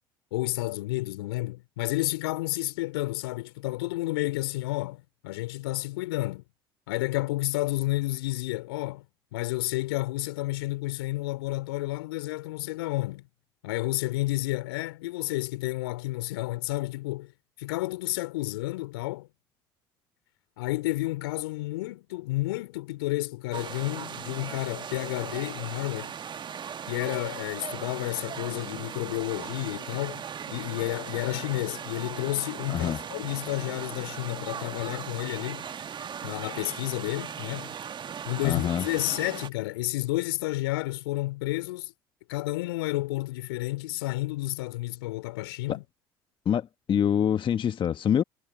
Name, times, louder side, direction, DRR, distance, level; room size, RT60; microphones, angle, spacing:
voice 1, 0.3-6.4 6.9-9.1 9.3-13.2 13.6-17.3 17.6-19.3 20.6-26.1 26.9-35.7 36.2-37.7 38.2-41.9 42.3-45.8, left 19 dB, 75° left, 3.7 m, -31 dB
sound 1, 23.5-39.5, right 8 dB, 35° right, 1.5 m, -38 dB
voice 2, 32.7-33.0 38.4-38.9 45.7-45.8 46.4-48.2, left 9 dB, 40° left, 1.2 m, -25 dB
hypercardioid pair, 65°, 13 cm